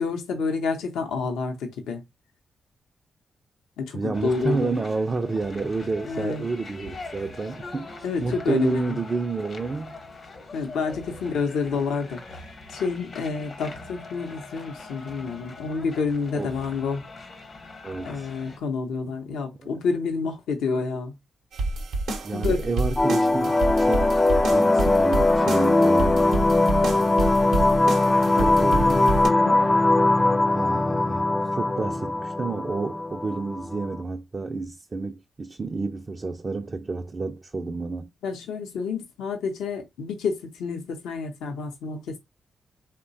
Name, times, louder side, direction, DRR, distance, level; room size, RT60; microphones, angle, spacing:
voice 1, 0.0-2.0 3.8-4.8 6.0-6.5 8.0-9.0 10.5-12.2 12.7-17.0 18.0-21.1 22.3-22.6 28.4-29.6 38.2-42.2, left 4 dB, 90° left, 0.6 m, -29 dB
voice 2, 3.9-10.0 16.3-16.5 17.8-18.3 19.6-19.8 22.2-26.4 28.3-29.1 30.5-38.1, right 3 dB, 45° right, 0.3 m, -30 dB
sound 1, 4.1-18.6, left 3 dB, 55° left, 0.8 m, -42 dB
sound 2, 21.5-29.3, right 2 dB, 85° right, 0.6 m, -29 dB
sound 3, 23.0-34.0, left 2 dB, 30° left, 0.4 m, -21 dB
3.0 x 2.1 x 2.6 m
supercardioid pair, 50°, 0 cm